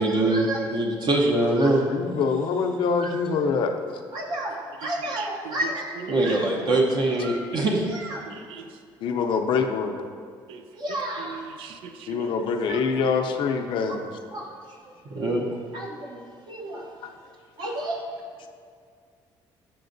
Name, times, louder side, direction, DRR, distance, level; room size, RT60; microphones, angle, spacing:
voice 1, 0.0-1.8 3.0-3.1 4.1-8.2 10.8-11.4 12.4-12.8 13.9-14.0 14.3-14.5 15.1-16.9 17.6-18.0, right 2 dB, 55° right, -1 dB, 0.8 m, -26 dB
voice 2, 1.4-3.7 9.0-10.0 12.1-14.0 17.0-17.1, left 5 dB, 65° left, 5 dB, 0.5 m, -25 dB
voice 3, 4.8-5.7 6.0-6.4 8.3-8.7 10.5-10.6 10.9-12.3, right 7 dB, 80° right, 7 dB, 0.4 m, -40 dB
7.7 x 5.8 x 2.6 m, 2.1 s
cardioid pair, 105°, 9 cm